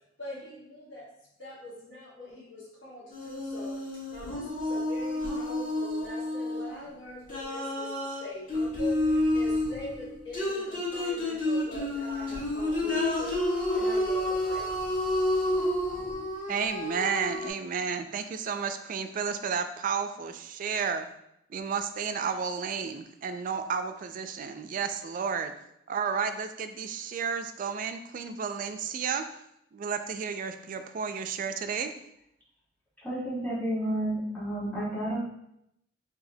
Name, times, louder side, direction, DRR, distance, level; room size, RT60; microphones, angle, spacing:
voice 1, 0.2-1.1 1.4-13.4 13.7-14.7, left 1 dB, 85° left, -7 dB, 1.4 m, -43 dB
sound 1, 3.1-6.8 7.3-17.5, left 1 dB, 45° left, 1.5 m, -30 dB
voice 2, 16.5-21.1 21.5-25.5 25.9-29.2 29.7-31.9, right 6 dB, 45° right, 8 dB, 0.3 m, -32 dB
voice 3, 33.0-35.2, right 1 dB, 10° left, -9 dB, 1.3 m, -31 dB
4.8 x 2.8 x 2.7 m, 0.78 s
head